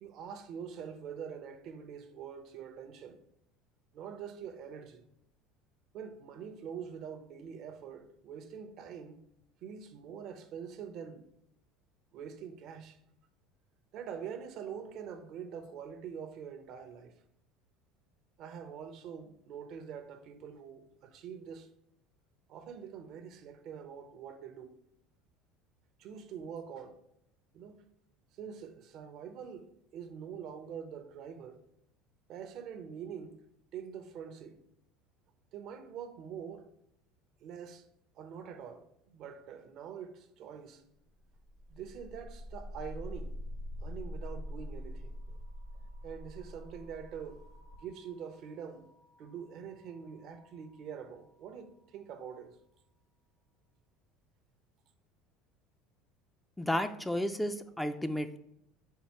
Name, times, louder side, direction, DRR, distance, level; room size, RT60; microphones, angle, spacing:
voice 1, 0.0-3.2 3.9-5.1 5.9-9.2 9.6-11.3 12.1-13.0 13.9-17.2 18.4-21.7 22.5-24.8 26.0-27.0 27.5-27.8 28.3-31.7 32.3-33.4 33.7-34.6 35.5-36.7 37.4-37.9 38.1-40.8 41.7-43.4 43.8-45.4 45.7-47.4 47.8-48.9 49.2-52.6, right 7 dB, 60° right, 0.6 m, -45 dB
sound 1, 41.2-51.1, left 1 dB, 65° left, 1.1 m, -45 dB
voice 2, 56.6-58.4, left 1 dB, 5° left, 0.3 m, -32 dB
4.5 x 3.9 x 2.9 m
supercardioid pair, 90°, 0 cm